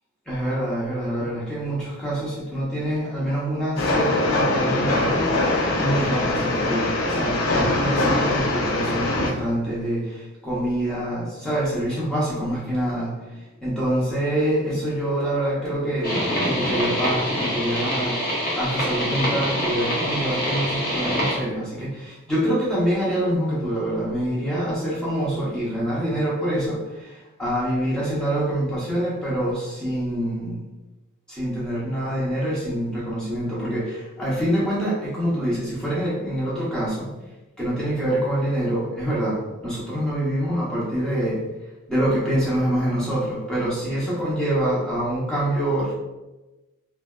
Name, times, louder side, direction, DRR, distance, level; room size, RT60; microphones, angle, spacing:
voice 1, 0.3-18.2 18.5-30.6 31.3-37.1 37.6-41.5 41.9-45.9, right 1 dB, 5° left, -8 dB, 0.7 m, -25 dB
Train, 3.8-9.3, left 2 dB, 85° left, 0.5 m, -22 dB
sound 1, 16.0-21.4, equal, 40° left, 0.7 m, -25 dB
2.5 x 2.2 x 2.2 m, 1.1 s
head